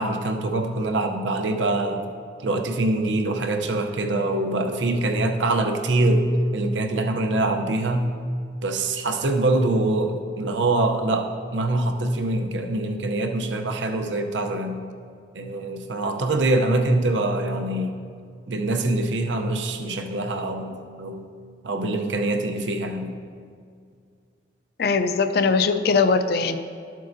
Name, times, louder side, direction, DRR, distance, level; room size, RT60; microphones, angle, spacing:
voice 1, 0.0-2.1 2.4-8.2 8.6-14.8 15.3-18.0 18.5-21.3 21.6-23.2, right 2 dB, 90° right, 5 dB, 0.7 m, -24 dB
voice 2, 24.8-26.6, left 4 dB, 55° left, 9 dB, 0.4 m, -20 dB
12.5 x 7.5 x 2.7 m, 2.2 s
head